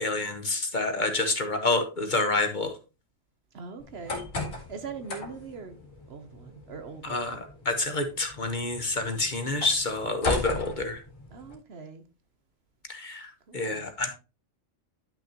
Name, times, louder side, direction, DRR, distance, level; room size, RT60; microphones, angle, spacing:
voice 1, 0.0-2.7 7.0-11.0 12.9-14.1, left 2 dB, 40° left, 1.1 m, -28 dB
voice 2, 3.5-4.3 4.6-5.8 6.1-7.4 11.3-12.0 13.5-13.8, right 5 dB, 55° right, 1.0 m, -42 dB
sound 1, 3.8-11.5, left 2 dB, 85° left, 2.5 m, -37 dB
10.5 x 6.1 x 2.9 m
omnidirectional pair, 1.4 m